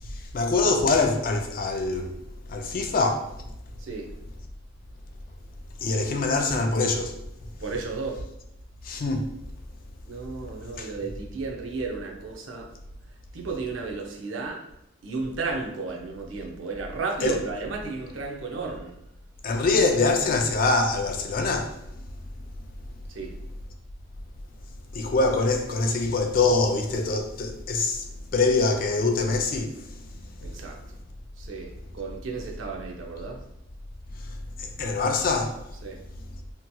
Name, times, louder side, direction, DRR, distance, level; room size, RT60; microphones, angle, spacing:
voice 1, 0.1-2.1 2.5-3.3 5.8-7.2 8.8-9.3 10.8-10.9 17.2-17.4 19.4-21.8 24.9-28.0 28.3-29.9 34.6-35.6, left 3 dB, 45° left, 0.3 m, -24 dB
voice 2, 7.6-8.2 10.1-12.7 13.3-14.6 15.0-19.0 23.1-23.3 30.4-30.8 31.4-33.4 35.8-36.0, right 4 dB, 80° right, 0.6 m, -33 dB
2.8 x 2.7 x 2.2 m
head